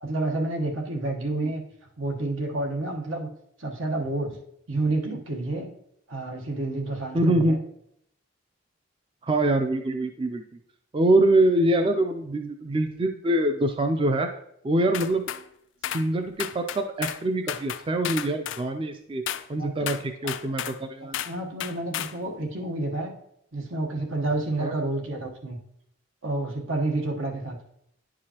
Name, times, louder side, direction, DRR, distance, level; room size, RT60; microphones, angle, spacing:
voice 1, 0.0-1.6 2.0-3.3 3.6-4.4 4.7-5.7 6.1-7.6 19.6-20.0 20.4-20.5 21.2-23.1 23.5-25.6 26.2-27.6, right 2 dB, 80° right, 1 dB, 1.1 m, -29 dB
voice 2, 7.1-7.6 9.2-10.4 10.9-14.3 14.6-15.3 15.9-19.2 19.5-21.2 24.6-24.7, right 1 dB, 25° right, 6 dB, 0.3 m, -24 dB
sound 1, 14.9-15.4 15.8-16.1 16.4-17.2 17.5-18.6 19.3-19.5 19.9-20.8 21.1-21.4 21.6-22.2, left 11 dB, 70° left, 0.3 m, -32 dB
10.0 x 4.8 x 2.9 m, 0.73 s
head